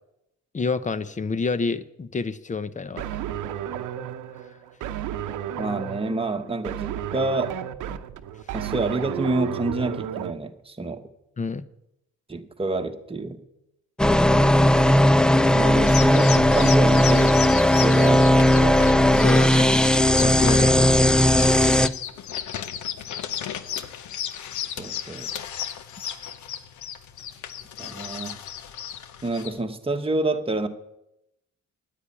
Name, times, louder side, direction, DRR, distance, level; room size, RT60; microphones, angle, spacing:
voice 1, 0.5-3.2 11.4-11.6 19.2-19.7 20.2-21.0, left 4 dB, 25° left, 15 dB, 0.7 m, -28 dB
sound 1, 3.0-10.3, right 10 dB, 80° right, 0.8 m, -32 dB
voice 2, 5.6-7.5 8.5-11.1 12.3-13.4 15.5-18.8 19.1-19.8 24.8-25.3 27.8-28.4 29.2-30.7, right 2 dB, 20° right, 5 dB, 1.3 m, -28 dB
sound 2, 14.0-21.9, left 1 dB, 5° left, 0.4 m, -17 dB
sound 3, 15.9-29.6, left 9 dB, 70° left, 1.0 m, -34 dB
10.0 x 8.6 x 8.7 m, 0.85 s
cardioid pair, 90°, 30 cm